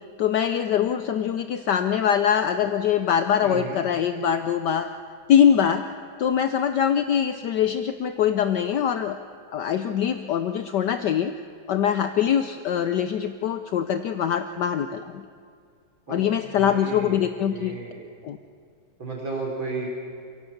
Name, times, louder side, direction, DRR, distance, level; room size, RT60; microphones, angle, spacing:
voice 1, 0.2-4.9 5.3-5.9 6.2-9.2 9.5-11.3 11.7-15.2 16.1-17.7 18.2-18.4, left 9 dB, 65° left, 9 dB, 1.2 m, -23 dB
voice 2, 3.4-3.8 16.1-16.2 16.6-18.0 19.0-19.9, right 3 dB, 70° right, -2 dB, 4.5 m, -33 dB
29.0 x 17.5 x 7.2 m, 2.3 s
omnidirectional pair, 2.2 m